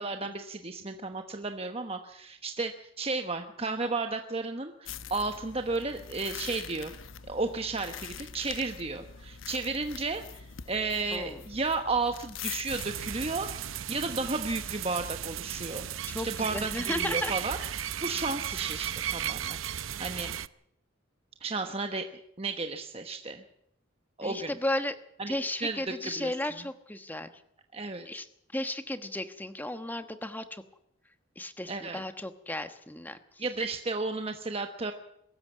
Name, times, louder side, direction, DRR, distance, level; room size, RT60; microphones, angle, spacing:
voice 1, 0.0-6.9 7.3-13.5 13.9-15.9 16.2-17.6 18.0-19.6 20.0-20.3 21.4-22.1 22.4-23.4 24.2-24.6 25.2-26.6 27.7-28.1 31.7-32.0 33.4-34.9, right 3 dB, 30° right, 6 dB, 1.1 m, -33 dB
sound 1, 4.8-13.4, left 8 dB, 75° left, 0.9 m, -44 dB
sound 2, 12.7-20.5, right 10 dB, 85° right, 0.7 m, -35 dB
voice 2, 16.1-17.3 24.2-24.9 25.3-27.3 28.0-28.3 28.5-30.6 31.4-33.2, left 1 dB, 10° left, 10 dB, 1.2 m, -34 dB
23.0 x 13.5 x 8.4 m, 0.75 s
head